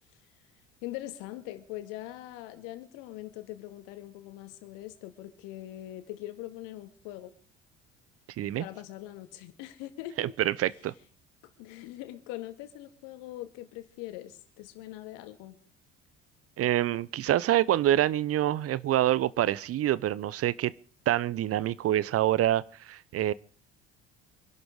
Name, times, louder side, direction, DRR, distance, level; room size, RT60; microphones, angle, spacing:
voice 1, 0.8-7.3 8.6-10.3 11.6-15.6, left 15 dB, 65° left, 2.1 m, -42 dB
voice 2, 10.2-10.9 16.6-20.7 21.1-23.3, right 13 dB, 45° right, 0.8 m, -26 dB
24.5 x 11.5 x 4.8 m
hypercardioid pair, 60°, 34 cm